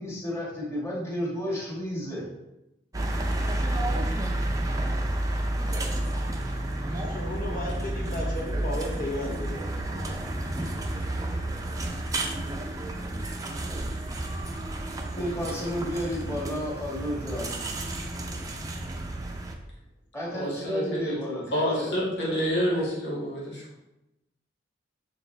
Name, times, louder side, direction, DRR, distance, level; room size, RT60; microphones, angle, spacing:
voice 1, 0.0-2.3 15.2-17.5 20.1-22.0, equal, 15° left, -6 dB, 1.8 m, -32 dB
sound 1, 2.9-19.5, right 1 dB, 20° right, 0.6 m, -31 dB
voice 2, 6.9-10.3 10.9-11.0, left 1 dB, 50° left, -2 dB, 1.6 m, -35 dB
voice 3, 20.3-21.1 21.5-23.6, equal, 85° left, -5 dB, 2.0 m, -28 dB
6.9 x 4.7 x 3.3 m, 0.92 s
head